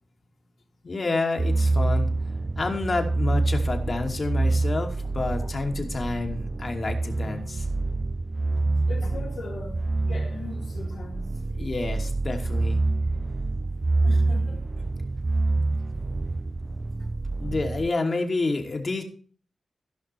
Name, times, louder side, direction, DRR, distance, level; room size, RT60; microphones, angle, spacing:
voice 1, 0.8-2.1 2.6-7.7 11.6-12.8 17.4-19.0, left 3 dB, 45° left, 2.7 m, -29 dB
Devious - Theme, 1.4-17.9, right 2 dB, 35° right, 0.6 m, -26 dB
voice 2, 8.4-9.8 10.1-11.2 14.0-14.7 17.0-17.1, left 3 dB, 80° left, 3.8 m, -40 dB
15.5 x 6.1 x 4.6 m
cardioid pair, 70°, 0 cm